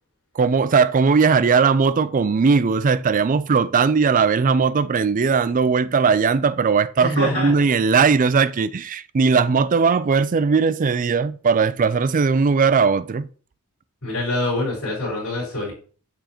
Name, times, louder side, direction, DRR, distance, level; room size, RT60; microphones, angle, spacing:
voice 1, 0.4-13.3, right 5 dB, 35° right, 0.4 m, -18 dB
voice 2, 7.0-7.5 14.0-15.7, left 2 dB, 80° left, 4.6 m, -25 dB
8.9 x 7.3 x 3.0 m
head